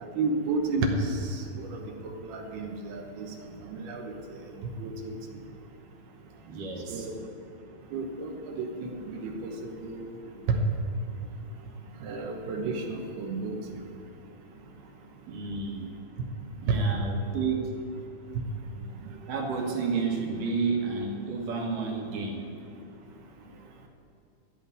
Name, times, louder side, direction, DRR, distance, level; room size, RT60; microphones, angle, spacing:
voice 1, 0.2-1.8 2.2-3.3 3.7-4.1 4.6-5.1 6.9-7.1 7.9-10.1 10.5-10.6 12.0-13.6 16.7-16.8, right 3 dB, 75° right, 2 dB, 2.9 m, -31 dB
voice 2, 6.5-7.1 15.3-15.9 16.6-17.7 19.3-22.5, right 4 dB, 60° right, 0 dB, 2.9 m, -31 dB
13.5 x 6.0 x 9.7 m, 2.8 s
omnidirectional pair, 4.8 m